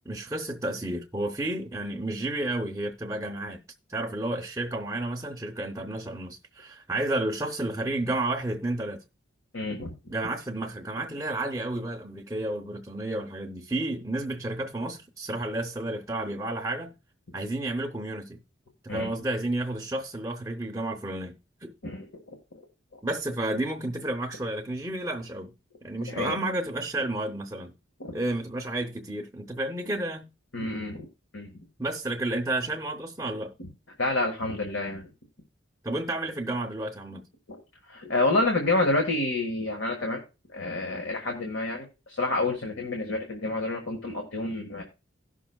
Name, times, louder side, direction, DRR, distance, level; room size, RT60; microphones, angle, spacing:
voice 1, 0.1-3.6 3.9-9.0 10.1-16.9 17.3-18.4 18.8-21.7 23.0-25.6 25.8-27.7 28.1-30.3 31.8-33.5 35.8-37.3, right 2 dB, 15° right, 0.7 m, -31 dB
voice 2, 9.5-9.9 18.9-19.1 21.8-22.1 26.1-26.4 28.0-28.1 30.5-31.1 31.3-31.5 34.0-35.1 37.9-40.2 40.5-44.8, left 2 dB, 80° left, 1.6 m, -28 dB
17.5 x 6.1 x 2.3 m
head